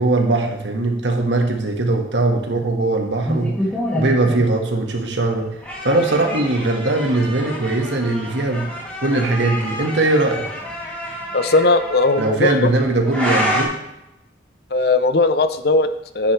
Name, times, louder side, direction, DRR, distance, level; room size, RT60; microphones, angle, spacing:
voice 1, 0.0-3.5 4.0-5.5 5.8-8.7 9.0-10.5 12.2-13.7, right 2 dB, 85° right, 3 dB, 1.6 m, -20 dB
sound 1, 3.3-4.5 5.3-13.6, equal, 5° left, 2.7 m, -28 dB
voice 2, 11.3-12.7 14.7-16.3, left 3 dB, 60° left, 11 dB, 0.6 m, -18 dB
9.9 x 9.7 x 3.3 m, 0.89 s
head